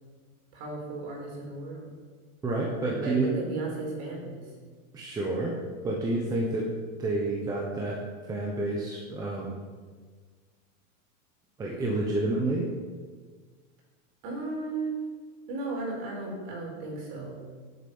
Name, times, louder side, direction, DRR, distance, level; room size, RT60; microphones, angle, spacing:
voice 1, 0.5-1.9 2.8-4.5 14.2-15.0 15.5-17.5, right 3 dB, 40° right, 0 dB, 4.5 m, -35 dB
voice 2, 2.4-3.3 4.9-5.6 5.8-6.7 7.0-8.0 8.3-9.5 11.6-12.7, right 2 dB, 10° right, -2 dB, 1.0 m, -29 dB
18.5 x 8.3 x 5.5 m, 1.5 s
supercardioid pair, 175°, 42 cm